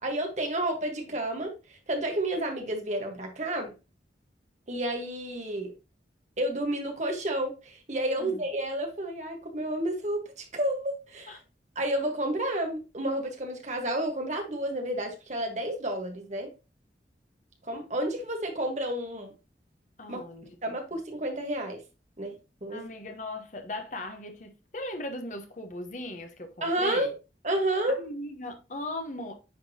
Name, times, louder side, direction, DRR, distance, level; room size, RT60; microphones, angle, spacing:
voice 1, 0.0-3.7 4.7-5.7 6.4-11.4 11.7-16.5 17.6-19.3 20.1-20.2 20.6-21.8 22.2-22.3 22.6-22.8 26.6-27.1 27.4-28.0, right 1 dB, 40° right, 1.4 m, -30 dB
voice 2, 20.0-20.5 22.7-27.1 27.9-29.3, left 1 dB, 45° left, 1.0 m, -38 dB
9.5 x 3.7 x 2.8 m
head